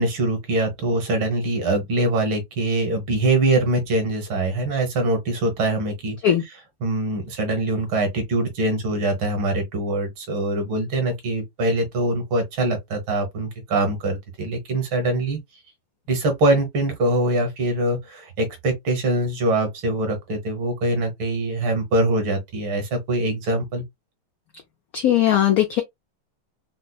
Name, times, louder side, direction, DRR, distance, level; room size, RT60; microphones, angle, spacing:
voice 1, 0.0-6.2 6.8-15.4 16.1-23.8, right 2 dB, 75° right, 2.0 m, -23 dB
voice 2, 24.9-25.8, left 11 dB, 85° left, 0.7 m, -18 dB
5.4 x 2.1 x 2.2 m
omnidirectional pair, 2.2 m